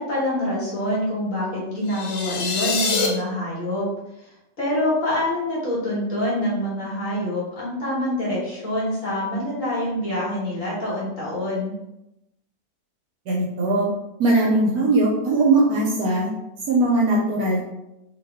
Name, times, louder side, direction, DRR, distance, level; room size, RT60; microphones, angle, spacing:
voice 1, 0.0-3.9 4.6-11.7, left 1 dB, 50° left, -7 dB, 1.5 m, -26 dB
sound 1, 1.9-3.1, left 5 dB, 85° left, 1.3 m, -25 dB
voice 2, 13.3-13.9 14.2-16.3 16.7-17.6, right 2 dB, 65° right, -2 dB, 1.0 m, -20 dB
2.9 x 2.9 x 3.4 m, 0.90 s
omnidirectional pair, 1.9 m